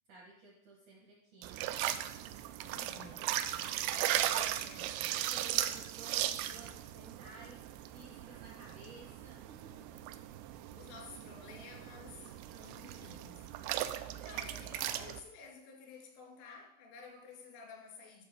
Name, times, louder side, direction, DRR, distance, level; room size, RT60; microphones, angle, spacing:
voice 1, 0.1-1.8 2.6-2.9 3.2-4.4 5.3-10.0 12.2-13.1 13.7-14.5, right 2 dB, 75° right, -2 dB, 1.8 m, -56 dB
sound 1, 1.4-15.2, right 12 dB, 90° right, 2.5 m, -37 dB
voice 2, 2.7-3.4 4.0-5.2 10.8-13.9 14.3-18.3, left 4 dB, 90° left, 0 dB, 4.8 m, -52 dB
11.5 x 6.5 x 5.1 m, 0.75 s
omnidirectional pair, 5.6 m